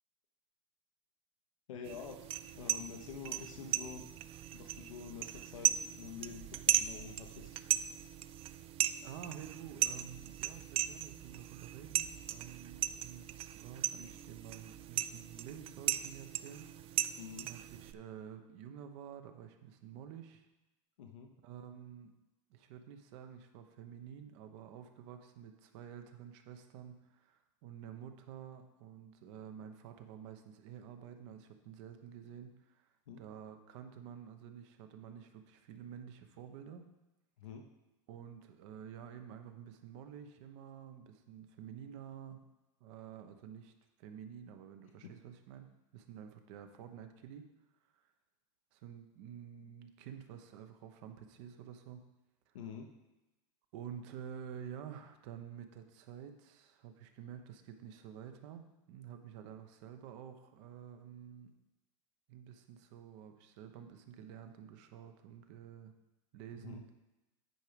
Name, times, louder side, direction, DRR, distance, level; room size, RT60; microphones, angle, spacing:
voice 1, 1.7-2.3 2.5-4.0 4.5-7.6 17.2-17.5 21.0-21.3 33.1-33.2 37.4-37.7 52.5-52.9 66.6-66.8, left 6 dB, 90° left, 3 dB, 0.9 m, -47 dB
sound 1, 1.8-17.9, right 12 dB, 35° right, 0.3 m, -37 dB
voice 2, 9.0-17.2 17.4-20.5 21.4-22.1 22.5-36.8 38.1-42.5 42.8-43.7 44.0-45.7 45.9-47.5 47.9-48.1 48.7-52.0 52.5-52.6 53.7-61.5 62.3-65.9 66.3-66.8, right 8 dB, 65° right, 7 dB, 1.0 m, -50 dB
9.1 x 4.7 x 5.2 m, 1.0 s
supercardioid pair, 115°, 17 cm